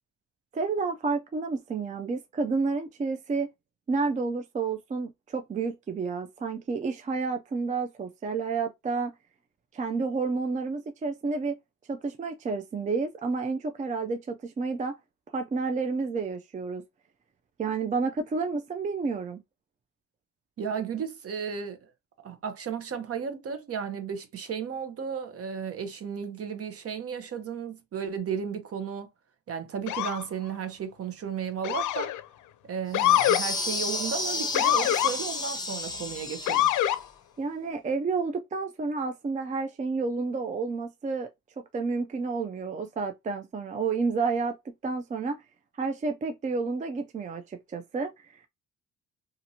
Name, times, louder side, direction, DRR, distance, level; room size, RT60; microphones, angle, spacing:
voice 1, 0.5-3.5 3.9-9.1 9.7-11.6 11.9-14.9 15.3-16.8 17.6-19.4 37.4-41.3 41.7-44.6 44.8-45.4 45.8-48.5, right 4 dB, 25° right, 0.4 m, -30 dB
voice 2, 20.6-21.9 22.2-29.1 29.5-32.1 32.7-36.7, right 7 dB, 50° right, 0.8 m, -34 dB
Motor vehicle (road) / Siren, 29.9-30.2 31.6-32.2 32.9-33.4 34.5-35.1 36.5-37.0, left 13 dB, 80° left, 0.5 m, -24 dB
sound 1, 32.9-37.0, left 2 dB, 15° left, 0.7 m, -32 dB
2.8 x 2.5 x 2.7 m
cardioid pair, 90°, 30 cm